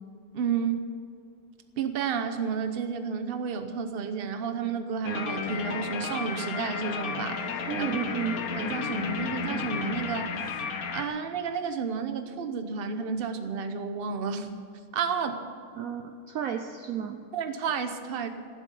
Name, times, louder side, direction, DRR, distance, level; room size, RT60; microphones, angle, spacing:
voice 1, 0.3-0.8 1.8-7.9 8.5-10.5 10.9-14.5 14.9-15.4 17.3-18.3, right 6 dB, 40° right, 8 dB, 1.0 m, -31 dB
sound 1, 5.0-11.0, left 5 dB, 60° left, 1.4 m, -33 dB
voice 2, 7.7-8.4 15.8-17.2, right 9 dB, 65° right, 7 dB, 1.0 m, -32 dB
15.0 x 7.8 x 10.0 m, 2.4 s
omnidirectional pair, 1.8 m